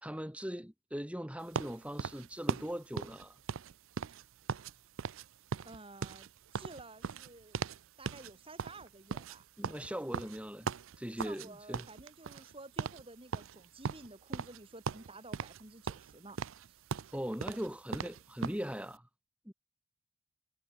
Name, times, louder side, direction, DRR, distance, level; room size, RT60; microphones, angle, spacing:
voice 1, 0.0-3.4 9.6-11.9 17.1-19.1 19.5-19.6, equal, 5° right, 2.3 m, -40 dB
sound 1, 1.5-4.7 5.0-5.3 5.5-7.8 8.1-8.3 8.6-11.5 11.7-12.5 12.8-13.0 13.3-14.6 14.9-15.6 15.9-18.6, right 6 dB, 60° right, 0.4 m, -38 dB
voice 2, 5.6-7.6 8.0-9.4 11.2-16.4 16.7-16.8, right 2 dB, 25° right, 3.2 m, -52 dB
head